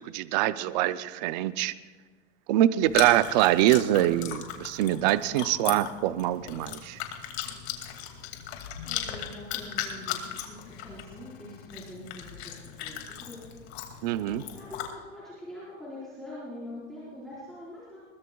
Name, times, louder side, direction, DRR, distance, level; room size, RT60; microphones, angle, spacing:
voice 1, 0.0-1.7 2.5-7.0 14.0-14.4, right 14 dB, 35° right, 15 dB, 0.4 m, -24 dB
Chewing mastication, 2.8-14.9, left 10 dB, 55° left, 2.3 m, -38 dB
voice 2, 8.8-13.4 13.7-18.0, left 1 dB, ahead, -11 dB, 4.5 m, -44 dB
21.5 x 20.5 x 2.3 m, 1.5 s
supercardioid pair, 160°, 37 cm